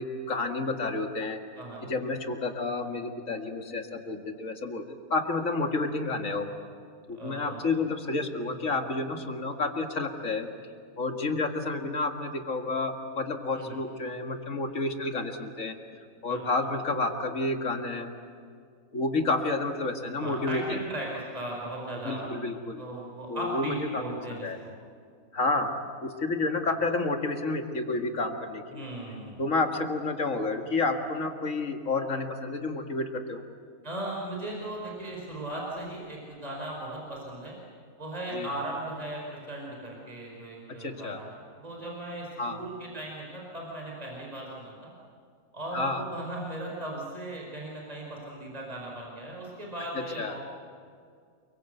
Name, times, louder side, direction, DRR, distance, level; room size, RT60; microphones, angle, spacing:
voice 1, 0.0-1.4 1.8-4.8 5.1-6.5 7.1-10.5 11.0-15.8 16.2-18.1 18.9-20.8 22.0-22.8 23.3-24.0 24.3-24.6 25.3-25.7 26.0-28.9 29.4-33.4 38.3-38.5 40.8-41.2 42.4-42.6 45.7-46.0 49.9-50.4, left 3 dB, 65° left, 4 dB, 2.4 m, -30 dB
voice 2, 1.6-1.9 7.1-7.6 13.5-13.8 16.1-16.5 20.2-22.3 22.8-24.7 28.7-29.4 33.8-37.5 38.0-44.9 45.5-50.4, right 1 dB, 25° right, -2 dB, 5.1 m, -37 dB
29.5 x 23.5 x 8.1 m, 2.2 s
omnidirectional pair, 1.5 m